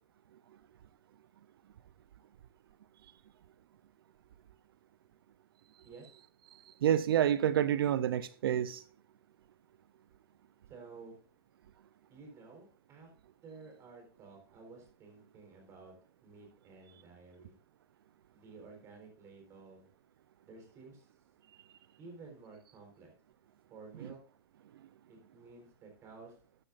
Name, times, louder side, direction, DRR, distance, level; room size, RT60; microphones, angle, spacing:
voice 1, 6.8-8.8, right 10 dB, 70° right, 0.6 m, -28 dB
voice 2, 10.7-11.2 12.1-13.1 13.4-15.9 16.2-17.6 18.3-19.9 20.5-21.1 22.0-23.1 23.7-24.2 25.1-26.3, right 4 dB, 20° right, 4.0 m, -53 dB
13.0 x 10.0 x 2.5 m
hypercardioid pair, 150°, 13 cm